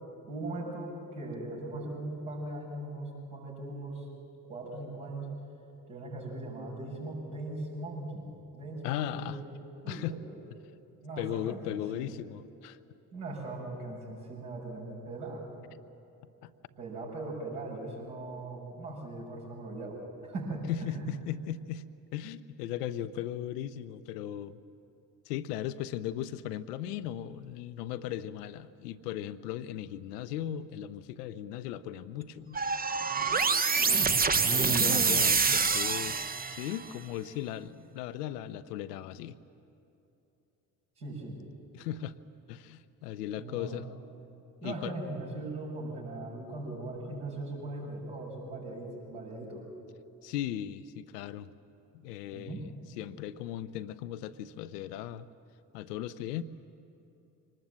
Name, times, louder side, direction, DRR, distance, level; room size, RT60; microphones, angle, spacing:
voice 1, 0.3-4.0 4.5-5.3 5.9-9.4 9.8-10.4 11.0-12.1 13.1-15.4 16.8-21.1 34.6-35.0 41.0-41.4 43.4-43.8 44.6-49.6 52.3-52.6, right 2 dB, 70° right, -5 dB, 6.5 m, -39 dB
voice 2, 8.8-9.4 9.9-10.2 11.2-12.8 16.4-16.5 20.7-21.8 22.1-24.6 25.3-32.6 34.3-39.3 41.7-42.1 42.5-43.9 44.6-44.9 50.2-51.5 51.9-55.3 55.7-56.4, left 11 dB, 70° left, 13 dB, 0.7 m, -37 dB
sound 1, 32.5-36.8, right 4 dB, 20° right, 0.8 m, -26 dB
24.5 x 19.5 x 7.6 m, 2.8 s
figure-of-eight pair, 45°, 50 cm